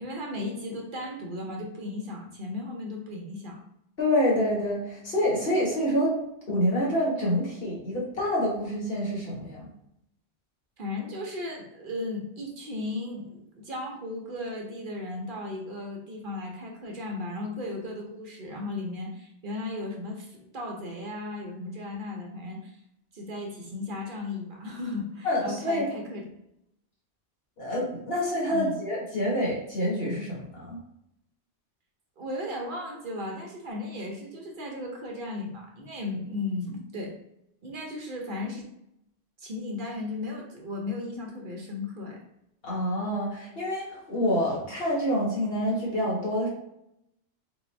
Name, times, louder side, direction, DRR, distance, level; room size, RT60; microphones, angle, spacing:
voice 1, 0.0-3.6 10.8-22.8 23.1-26.3 28.5-28.7 32.2-37.1 37.6-38.7 39.4-42.2, left 2 dB, 50° right, 0 dB, 0.8 m, -35 dB
voice 2, 4.0-6.1 6.5-9.7 25.2-25.8 27.6-30.8 42.6-46.5, equal, 55° left, -4 dB, 1.5 m, -27 dB
3.8 x 2.6 x 3.2 m, 0.81 s
omnidirectional pair, 1.2 m